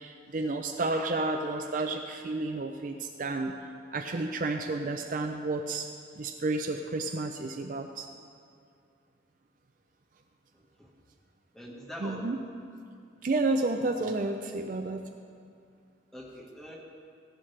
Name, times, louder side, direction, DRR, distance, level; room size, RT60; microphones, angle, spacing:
voice 1, 0.0-3.5 3.9-5.9 6.2-8.1 12.0-12.4 13.2-15.0, right 2 dB, 45° right, 4 dB, 0.4 m, -31 dB
voice 2, 10.5-10.9 11.5-12.3 14.0-14.1 16.1-16.8, equal, ahead, -4 dB, 1.4 m, -44 dB
15.0 x 11.0 x 3.3 m, 2.3 s
head